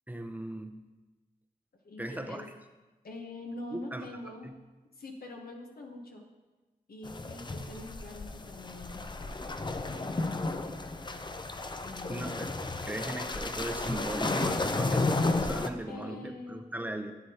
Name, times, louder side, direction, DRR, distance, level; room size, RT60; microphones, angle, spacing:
voice 1, 0.1-0.8 2.0-2.5 3.7-4.1 4.4-4.5 12.1-12.5 12.8-17.1, right 1 dB, 10° right, 6 dB, 0.8 m, -38 dB
voice 2, 1.8-2.5 3.0-4.5 4.9-6.2 6.9-9.1 10.0-10.7 11.8-12.6 15.9-16.7, left 2 dB, 70° left, 0 dB, 1.0 m, -44 dB
sound 1, 7.0-15.7, left 2 dB, 30° left, 0.6 m, -33 dB
8.3 x 7.9 x 2.9 m, 1.2 s
cardioid pair, 45°, 16 cm